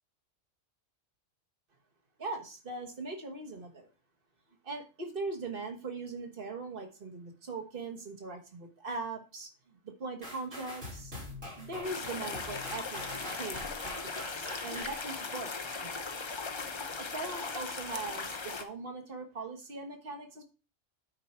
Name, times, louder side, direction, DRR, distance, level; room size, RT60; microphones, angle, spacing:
voice 1, 2.2-3.9 4.6-11.2 11.5-13.1 13.4-13.7 14.0-15.5 15.8-16.2 17.0-20.4, right 3 dB, 45° right, 3 dB, 1.5 m, -40 dB
sound 1, 10.2-16.1 16.6-16.7, left 1 dB, 75° right, 4.3 m, -44 dB
sound 2, 11.8-18.6, left 4 dB, 30° left, 0.6 m, -38 dB
9.6 x 4.6 x 4.3 m, 0.33 s
omnidirectional pair, 1.3 m